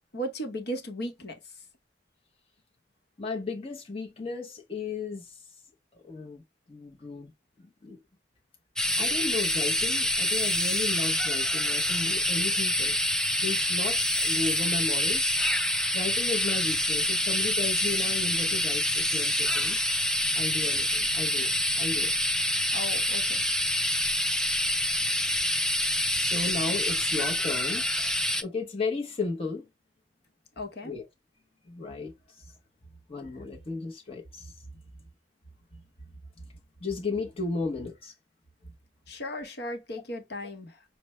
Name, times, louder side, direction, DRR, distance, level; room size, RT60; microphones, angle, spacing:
voice 1, 0.1-1.5 22.7-23.4 30.6-30.9 39.1-40.8, equal, 60° left, 0.9 m, -36 dB
voice 2, 3.2-5.4 6.0-6.4 6.7-7.3 7.6-8.0 8.9-13.0 13.4-15.3 15.9-19.8 20.3-22.1 26.1-27.8 28.4-29.7 30.8-31.1 31.7-32.1 33.1-34.6 36.8-38.1, left 3 dB, 30° left, 0.8 m, -34 dB
sound 1, 8.8-28.4, left 1 dB, 5° left, 0.3 m, -26 dB
5.9 x 2.1 x 3.0 m
head